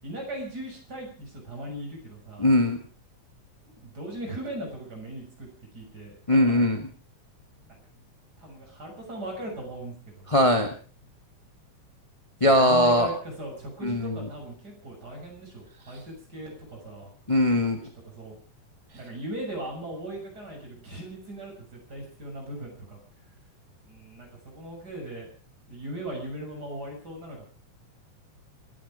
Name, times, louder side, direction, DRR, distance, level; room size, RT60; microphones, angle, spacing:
voice 1, 0.0-2.5 3.6-5.5 5.7-6.8 7.6-7.8 8.4-10.3 12.4-17.1 17.6-17.7 18.1-18.4 18.9-23.0 23.8-25.3 25.7-27.5, right 1 dB, 30° right, 0 dB, 7.1 m, -39 dB
voice 2, 2.4-2.8 6.3-6.9 10.3-10.7 12.4-13.1 13.8-14.2 17.3-17.8, left 1 dB, 15° left, 4 dB, 1.0 m, -20 dB
27.5 x 9.9 x 5.1 m, 0.40 s
omnidirectional pair, 3.6 m